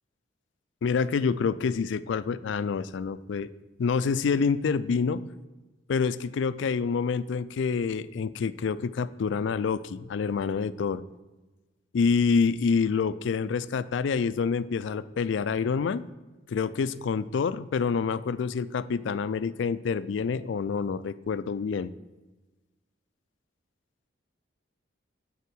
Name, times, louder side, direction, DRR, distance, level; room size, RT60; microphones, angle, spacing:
voice 1, 0.8-3.5 3.8-5.2 5.9-11.0 11.9-16.1 16.5-21.9, left 5 dB, 70° left, 15 dB, 0.3 m, -27 dB
8.3 x 4.5 x 6.1 m, 1.2 s
head